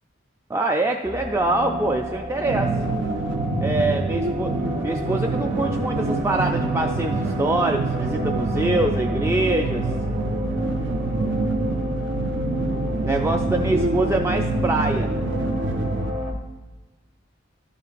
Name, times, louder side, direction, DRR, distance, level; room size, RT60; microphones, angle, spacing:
voice 1, 0.5-2.8 3.6-4.5 4.8-9.9 13.0-15.1, right 2 dB, 15° right, 3 dB, 0.3 m, -24 dB
sound 1, 1.1-16.3, equal, 45° right, 1.7 m, -29 dB
sound 2, 2.5-16.1, right 3 dB, 65° right, 0.5 m, -27 dB
12.5 x 6.8 x 2.5 m, 1.2 s
head